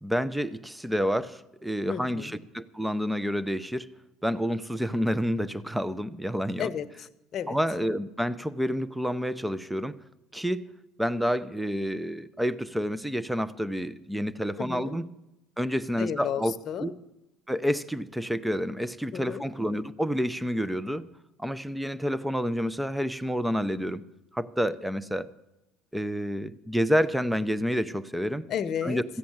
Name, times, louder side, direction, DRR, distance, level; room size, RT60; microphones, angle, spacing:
voice 1, 0.0-3.9 4.2-6.7 7.5-10.0 10.3-10.7 11.0-15.1 15.6-16.9 17.5-21.1 21.4-24.0 24.3-25.3 25.9-28.5 28.8-29.0, equal, 5° right, 17 dB, 0.6 m, -29 dB
voice 2, 1.9-2.3 6.6-7.6 14.6-15.0 16.0-16.9 19.1-19.4 28.5-29.0, left 8 dB, 50° left, 12 dB, 0.9 m, -33 dB
14.5 x 8.4 x 7.9 m, 0.92 s
supercardioid pair, 100°, 0 cm